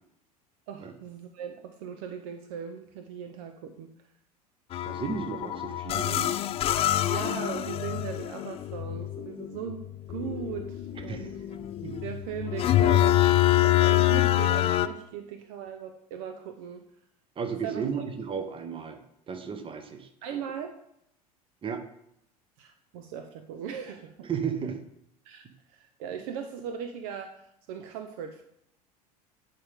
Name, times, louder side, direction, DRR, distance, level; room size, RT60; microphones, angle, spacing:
voice 1, 0.7-3.9 7.0-9.8 10.1-11.4 12.0-16.8 17.6-17.9 20.2-20.7 22.6-24.3 25.2-28.4, right 8 dB, 55° right, 6 dB, 0.6 m, -38 dB
sound 1, 4.7-14.9, left 13 dB, 30° left, 0.4 m, -26 dB
voice 2, 4.8-6.4 11.1-11.3 11.8-12.1 17.4-19.0 19.3-20.1 21.6-21.8 24.2-24.8, right 6 dB, 25° right, 7 dB, 1.0 m, -34 dB
10.5 x 3.8 x 3.5 m, 0.75 s
figure-of-eight pair, 70°, 20 cm